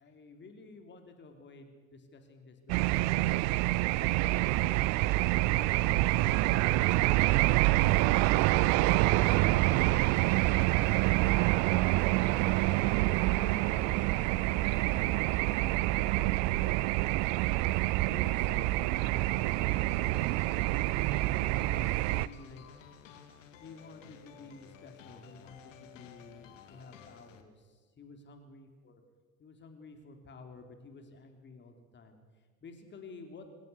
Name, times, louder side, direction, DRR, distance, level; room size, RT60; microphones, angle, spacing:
voice 1, 0.0-3.6 4.2-11.8 12.2-17.3 18.1-20.7 21.2-22.6 23.6-29.0 29.4-33.5, left 3 dB, 25° left, 5 dB, 3.6 m, -52 dB
sound 1, 2.7-22.3, right 19 dB, 40° right, 0.7 m, -27 dB
sound 2, 19.7-27.4, left 7 dB, 65° left, 2.4 m, -54 dB
26.0 x 16.0 x 8.2 m, 1.4 s
figure-of-eight pair, 70°, 41 cm